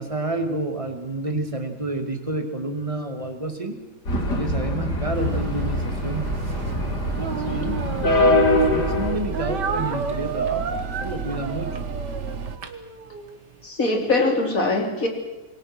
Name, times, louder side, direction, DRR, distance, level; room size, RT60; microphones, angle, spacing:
voice 1, 0.0-3.8 4.4-6.3 7.5-11.8, right 2 dB, 20° right, 5 dB, 2.5 m, -29 dB
sound 1, 4.1-9.1, left 2 dB, 65° left, 3.6 m, -23 dB
sound 2, 5.1-12.6, right 5 dB, 45° right, 1.3 m, -32 dB
Speech, 7.1-8.7 9.3-13.4, right 5 dB, 75° right, 2.3 m, -31 dB
voice 2, 13.6-15.1, left 2 dB, 50° left, 3 dB, 3.9 m, -22 dB
26.5 x 23.5 x 6.2 m, 1.0 s
omnidirectional pair, 1.9 m